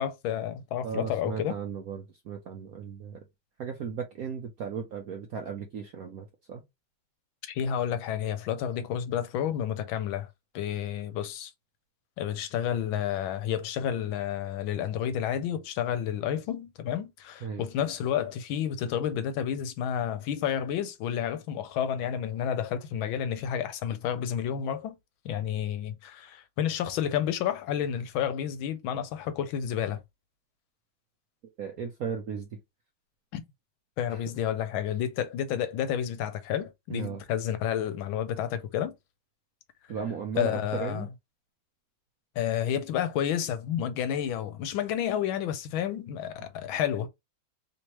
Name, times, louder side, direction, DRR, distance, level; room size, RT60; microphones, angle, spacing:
voice 1, 0.0-1.5 7.4-10.3 10.5-11.5 12.2-25.0 25.2-30.0 33.3-33.4 34.0-38.9 40.4-41.1 42.4-47.1, left 9 dB, 80° left, 1.4 m, -30 dB
voice 2, 0.8-3.2 3.6-6.6 17.4-17.7 31.6-32.6 34.1-34.2 36.9-37.2 39.9-41.1, right 6 dB, 70° right, 0.8 m, -36 dB
3.5 x 3.0 x 2.9 m
omnidirectional pair, 2.2 m